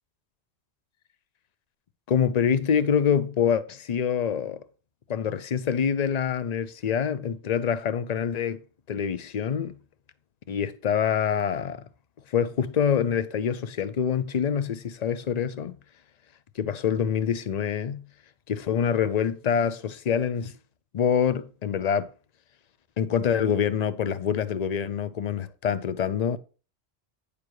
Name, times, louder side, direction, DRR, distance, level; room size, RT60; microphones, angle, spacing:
voice 1, 2.1-4.6 5.1-8.6 8.9-9.8 10.5-11.8 12.3-15.8 16.6-18.0 18.5-20.5 20.9-22.1 23.0-26.4, left 7 dB, 45° left, 0.6 m, -26 dB
9.8 x 6.9 x 3.1 m
omnidirectional pair, 1.1 m